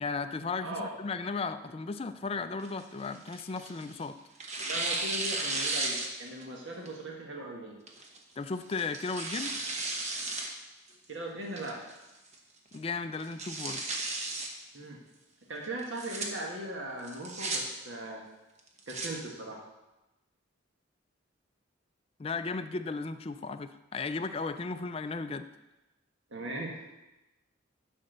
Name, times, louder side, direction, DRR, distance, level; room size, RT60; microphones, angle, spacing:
voice 1, 0.0-4.2 8.4-9.6 12.7-13.9 22.2-25.5, left 4 dB, 30° left, 10 dB, 0.3 m, -35 dB
Tearing, 2.6-3.9 4.4-6.4 6.9-7.0 7.9-8.2 8.7-10.5 10.9-11.0 11.6-12.0 12.3-12.4 12.7-12.8 13.2-14.5 15.8-16.3 17.0-17.6 18.6-19.1, right 2 dB, 35° right, 1.0 m, -34 dB
voice 2, 4.6-7.8 10.9-11.8 14.7-15.0 15.5-18.2 18.9-19.6 26.3-26.8, right 1 dB, 65° right, -1 dB, 1.4 m, -39 dB
10.0 x 4.3 x 6.6 m, 1.0 s
head